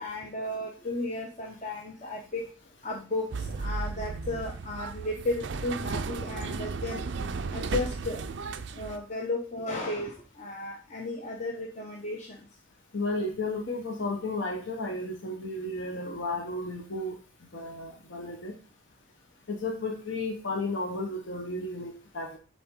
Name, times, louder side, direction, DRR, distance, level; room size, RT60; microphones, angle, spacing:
voice 1, 0.0-2.4 2.8-3.3 3.6-7.0 7.5-8.2 8.8-12.3, left 2 dB, 35° left, 0 dB, 0.8 m, -34 dB
sound 1, 3.3-9.0, right 4 dB, 55° right, 0.4 m, -34 dB
voice 2, 12.9-17.1 17.5-18.5 19.5-22.4, left 2 dB, 60° left, 2 dB, 0.9 m, -33 dB
7.6 x 4.1 x 3.6 m, 0.37 s
head